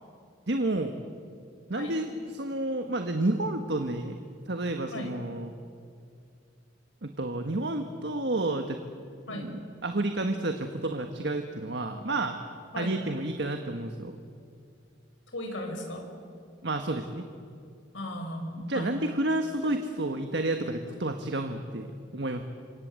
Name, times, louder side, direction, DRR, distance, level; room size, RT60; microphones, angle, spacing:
voice 1, 0.5-1.0 1.7-4.2 4.4-5.5 7.0-8.8 9.3-12.4 12.7-14.2 16.6-17.2 18.6-22.4, right 2 dB, 65° right, 6 dB, 1.5 m, -30 dB
voice 2, 9.3-9.6 12.7-13.0 15.3-16.0 17.9-19.0, left 1 dB, 90° left, 3 dB, 5.6 m, -36 dB
28.5 x 25.5 x 7.8 m, 2.3 s
head